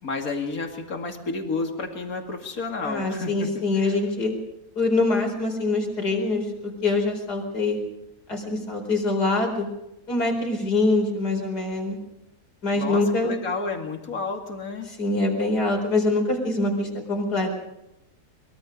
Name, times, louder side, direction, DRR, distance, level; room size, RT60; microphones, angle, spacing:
voice 1, 0.0-3.9 12.7-14.9, left 3 dB, 60° left, 4 dB, 2.9 m, -31 dB
voice 2, 2.8-4.3 4.8-7.8 8.3-9.7 10.1-12.0 12.6-13.3 14.9-17.5, left 2 dB, 80° left, 3 dB, 5.0 m, -24 dB
24.0 x 22.5 x 5.3 m, 0.89 s
omnidirectional pair, 1.7 m